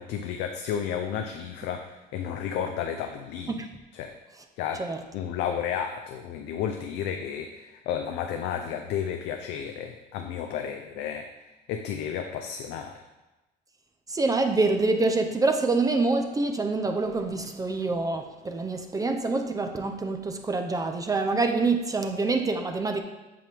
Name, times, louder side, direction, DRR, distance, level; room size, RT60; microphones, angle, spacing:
voice 1, 0.0-3.6 3.9-4.1 4.6-4.8 5.1-11.3 11.7-13.0, left 8 dB, 90° left, 5 dB, 0.5 m, -32 dB
voice 2, 14.1-23.0, right 3 dB, 20° right, 5 dB, 0.6 m, -26 dB
7.7 x 5.2 x 3.4 m, 1.1 s
cardioid pair, 110°, 17 cm